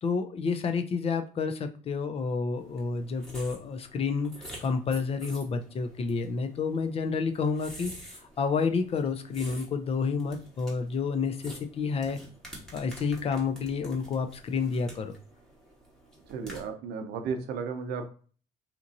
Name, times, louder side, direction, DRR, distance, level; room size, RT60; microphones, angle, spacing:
voice 1, 0.0-7.9 8.4-12.2 12.7-15.1, left 5 dB, 35° left, 7 dB, 0.4 m, -29 dB
sound 1, 2.6-16.7, equal, 5° left, 1.0 m, -49 dB
voice 2, 16.3-18.1, right 5 dB, 80° right, 6 dB, 0.6 m, -34 dB
2.9 x 2.5 x 2.4 m, 0.40 s
cardioid pair, 110°, 17 cm